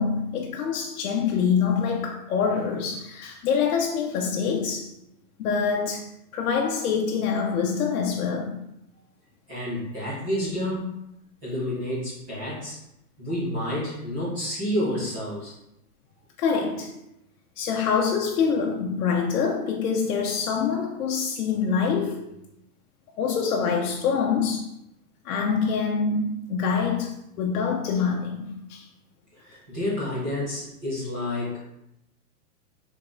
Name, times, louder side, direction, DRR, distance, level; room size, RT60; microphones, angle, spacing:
voice 1, 0.0-4.9 5.4-8.6 16.4-17.0 17.6-22.3 23.2-24.7 25.2-28.8, left 6 dB, 70° left, 0 dB, 0.7 m, -25 dB
voice 2, 9.5-10.9 11.4-12.8 13.2-15.5 29.3-31.6, left 1 dB, 10° right, -10 dB, 0.3 m, -29 dB
4.7 x 3.6 x 2.5 m, 0.82 s
hypercardioid pair, 145°, 45 cm